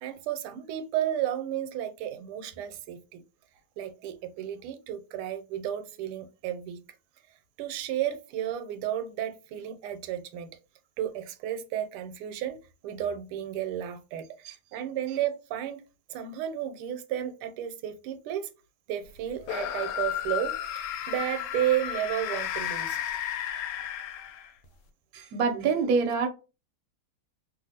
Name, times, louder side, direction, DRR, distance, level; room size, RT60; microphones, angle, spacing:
voice 1, 0.0-3.2 3.8-6.8 7.6-10.5 11.0-12.6 12.8-15.8 16.1-18.5 18.9-23.0, right 11 dB, 85° right, 1.4 m, -32 dB
sound 1, 19.4-24.7, left 10 dB, 90° left, 1.5 m, -33 dB
voice 2, 25.1-26.3, right 5 dB, 70° right, 0.9 m, -25 dB
3.2 x 2.5 x 2.7 m
omnidirectional pair, 2.3 m